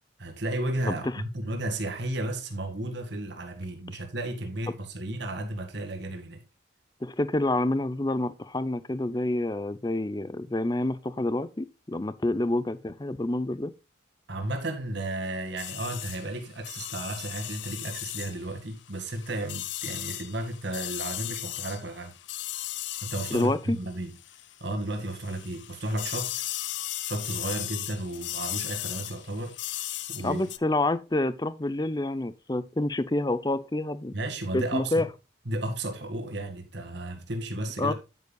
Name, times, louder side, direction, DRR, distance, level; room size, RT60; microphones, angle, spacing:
voice 1, 0.2-6.4 14.3-22.1 23.0-24.1 24.6-26.3 27.1-30.5 34.1-35.1 35.5-37.9, right 1 dB, 60° right, 2.0 m, -33 dB
voice 2, 7.0-13.7 23.3-23.8 30.2-34.1 34.5-35.1 37.8-37.9, left 2 dB, 20° left, 0.5 m, -28 dB
sound 1, 15.6-24.6 24.9-30.6, left 14 dB, 65° left, 0.6 m, -37 dB
9.5 x 9.5 x 2.3 m
head